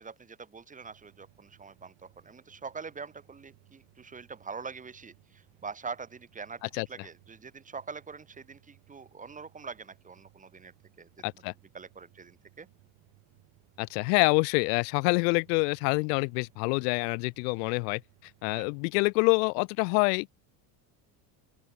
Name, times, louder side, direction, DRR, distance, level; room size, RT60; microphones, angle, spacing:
voice 1, 0.0-6.6 6.9-11.2 11.7-12.7 18.5-18.7, right 5 dB, 15° right, 2.0 m, -44 dB
sound 1, 0.8-18.9, right 24 dB, 65° right, 6.4 m, -63 dB
voice 2, 11.2-11.5 13.8-20.3, left 33 dB, 85° left, 0.8 m, -26 dB
open air
cardioid pair, 135°, 46 cm